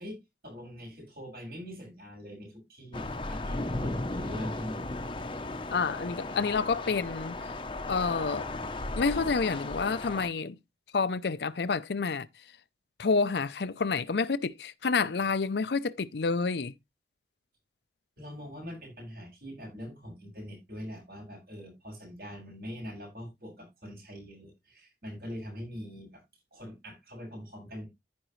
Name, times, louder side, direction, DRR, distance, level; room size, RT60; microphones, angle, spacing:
voice 1, 0.0-4.9 18.2-26.2 26.5-27.8, equal, 55° right, 7.5 m, -43 dB
Thunder / Rain, 2.9-10.3, left 2 dB, 30° left, 0.7 m, -36 dB
voice 2, 5.7-7.4 7.9-8.5 9.0-10.6 10.9-12.3 13.0-16.7, left 4 dB, 70° left, 0.5 m, -29 dB
14.5 x 5.2 x 3.1 m
head